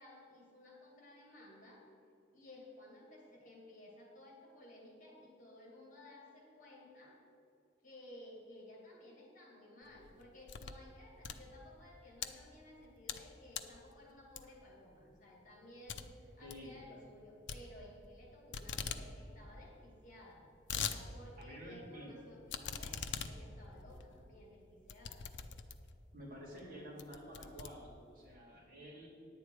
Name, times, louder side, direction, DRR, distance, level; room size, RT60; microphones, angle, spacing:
voice 1, 0.0-1.8 2.3-7.2 7.8-25.2 28.5-28.9, left 1 dB, 40° left, -2 dB, 2.2 m, -56 dB
sound 1, 9.9-10.8 11.1-12.3 12.8-13.3 13.5-13.8 14.4-14.7 15.1-15.2 15.5-15.6 15.9-16.0 16.3-16.6 17.5-18.2 18.5-19.0 19.4-19.5 19.6-19.7 20.3-21.0 21.4-21.5 22.5-26.0 26.6-26.7 27.0-28.2, left 7 dB, 70° left, 0.6 m, -42 dB
voice 2, 16.4-16.7 21.4-22.1 26.1-29.1, equal, 45° right, -4 dB, 2.7 m, -50 dB
10.5 x 8.7 x 4.7 m, 2.7 s
head